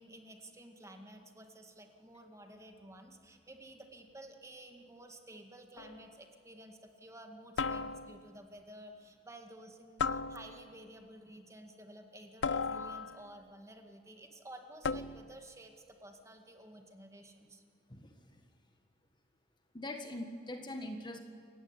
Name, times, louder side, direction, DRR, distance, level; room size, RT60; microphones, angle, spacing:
voice 1, 0.0-17.6, right 1 dB, 15° right, 4 dB, 2.0 m, -53 dB
sound 1, 5.8-6.1 7.6-8.4 10.0-10.8 12.4-13.4 14.8-15.4, left 4 dB, 70° left, 0.6 m, -36 dB
voice 2, 17.9-18.3 19.7-21.2, left 1 dB, 25° left, 6 dB, 1.6 m, -42 dB
28.0 x 15.5 x 9.8 m, 2.4 s
head